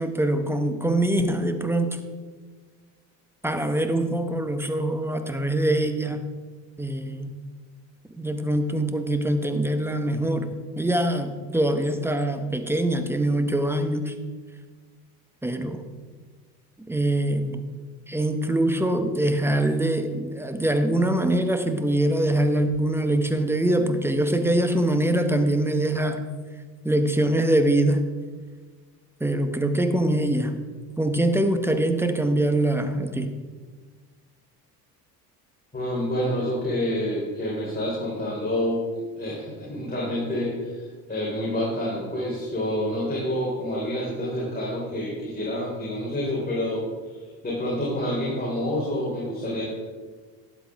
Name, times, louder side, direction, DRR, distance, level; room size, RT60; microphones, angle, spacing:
voice 1, 0.0-2.0 3.4-6.3 6.8-7.3 8.2-10.5 10.8-14.2 15.4-15.8 16.9-17.6 18.1-26.2 26.8-28.0 29.2-30.5 31.0-33.3, right 1 dB, 5° right, 8 dB, 1.0 m, -23 dB
voice 2, 35.7-38.8 39.2-46.8 47.4-49.6, left 1 dB, 20° left, -6 dB, 3.6 m, -28 dB
12.5 x 8.6 x 3.6 m, 1.4 s
hypercardioid pair, 65°, 49 cm